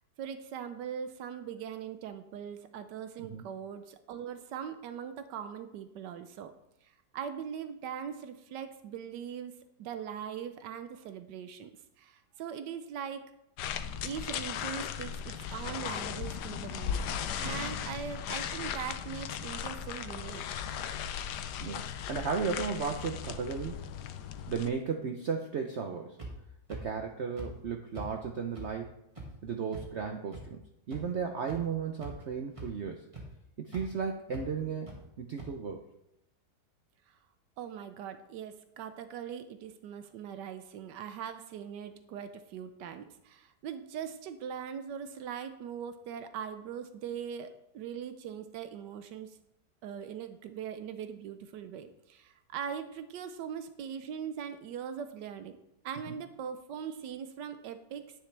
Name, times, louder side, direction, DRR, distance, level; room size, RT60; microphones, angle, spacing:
voice 1, 0.2-6.5 7.1-9.5 9.8-11.7 12.0-13.3 14.0-20.4 37.1-37.2 37.6-49.3 49.8-58.1, right 8 dB, 90° right, 9 dB, 1.3 m, -41 dB
sound 1, 13.6-24.7, left 8 dB, 80° left, 1.2 m, -37 dB
voice 2, 21.6-23.8 24.5-26.2 26.7-28.9 29.4-33.0 33.6-34.9 35.2-35.9 56.1-56.2, right 6 dB, 55° right, 4 dB, 0.8 m, -35 dB
sound 2, 26.2-26.3 26.7-26.8 27.4-27.5 27.9-28.1 28.6-28.7 29.2-29.3 29.7-29.8 30.3-30.4 30.9-31.0 31.5-31.6 32.0-32.3 32.6-32.7 33.1-33.2 33.7-33.8 34.3-34.4 34.9-35.0 35.4-35.5, right 2 dB, 20° right, 1.9 m, -42 dB
9.9 x 9.5 x 3.3 m, 0.82 s
omnidirectional pair, 1.8 m